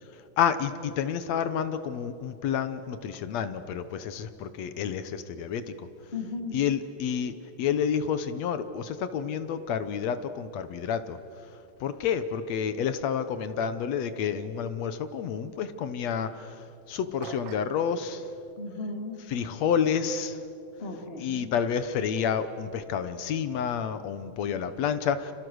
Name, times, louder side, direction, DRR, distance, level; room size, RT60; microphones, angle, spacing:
voice 1, 0.4-5.9 6.5-11.2 11.8-16.6 16.9-18.3 19.3-20.4 21.2-25.3, left 7 dB, 70° left, 11 dB, 2.1 m, -29 dB
voice 2, 6.1-6.6 18.6-19.2 20.8-21.5 24.4-24.6, left 3 dB, 20° left, 1 dB, 2.5 m, -36 dB
sound 1, 17.2-17.8, right 8 dB, 60° right, 1.9 m, -42 dB
30.0 x 28.0 x 6.4 m, 2.7 s
omnidirectional pair, 3.4 m